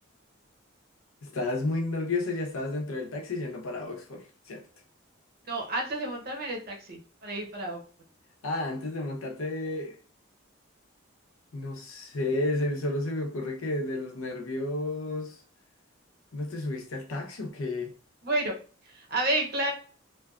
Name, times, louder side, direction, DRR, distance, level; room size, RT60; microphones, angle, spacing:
voice 1, 1.2-4.6 8.4-10.0 11.5-15.4 16.3-17.9, left 2 dB, 85° left, 0.7 m, -32 dB
voice 2, 5.5-7.8 18.2-18.5 18.9-19.7, right 1 dB, 45° right, 0.7 m, -30 dB
2.6 x 2.2 x 2.3 m
head